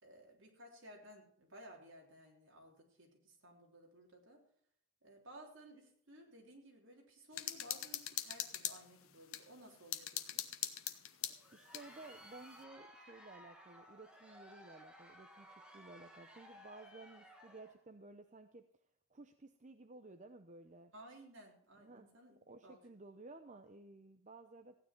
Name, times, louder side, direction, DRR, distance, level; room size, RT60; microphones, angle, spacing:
voice 1, 0.0-4.4 5.0-10.4 20.9-22.4 22.6-22.8, right 1 dB, 65° right, 0 dB, 3.4 m, -57 dB
sound 1, 7.3-9.4 9.9-11.9, left 11 dB, 85° left, 1.0 m, -41 dB
Crowd, 11.3-17.8, equal, 5° right, 1.6 m, -58 dB
voice 2, 11.5-18.6 19.1-20.9 21.8-22.1 22.5-24.8, right 2 dB, 35° right, 6 dB, 0.7 m, -55 dB
15.0 x 9.6 x 4.5 m, 0.66 s
head